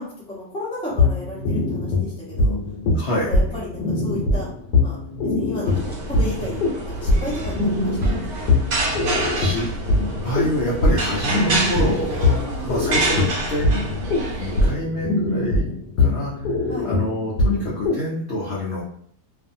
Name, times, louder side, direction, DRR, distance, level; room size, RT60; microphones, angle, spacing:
voice 1, 0.0-2.5 2.9-4.5 4.8-5.0 5.2-8.3 12.4-12.8 16.7-17.0, left 1 dB, 5° left, -6 dB, 0.5 m, -34 dB
sound 1, 0.9-18.0, left 2 dB, 80° left, 1.1 m, -22 dB
voice 2, 2.9-3.3 8.6-8.7 9.3-9.7 10.2-13.8 14.3-15.6 16.0-18.8, left 1 dB, 65° left, -6 dB, 0.6 m, -27 dB
sound 2, 5.7-14.7, right 2 dB, 60° right, 0.9 m, -28 dB
2.6 x 2.5 x 2.5 m, 0.63 s
omnidirectional pair, 1.7 m